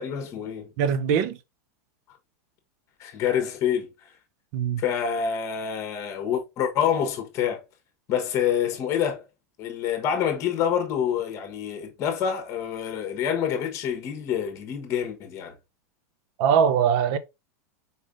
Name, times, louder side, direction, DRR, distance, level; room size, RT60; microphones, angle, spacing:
voice 1, 0.0-0.7 3.0-3.9 4.8-7.6 8.1-9.2 9.6-15.5, left 8 dB, 35° left, 1.1 m, -27 dB
voice 2, 0.8-1.4 4.5-4.8 16.4-17.2, right 7 dB, 50° right, 0.5 m, -21 dB
4.2 x 3.3 x 2.5 m
supercardioid pair, 145°, 9 cm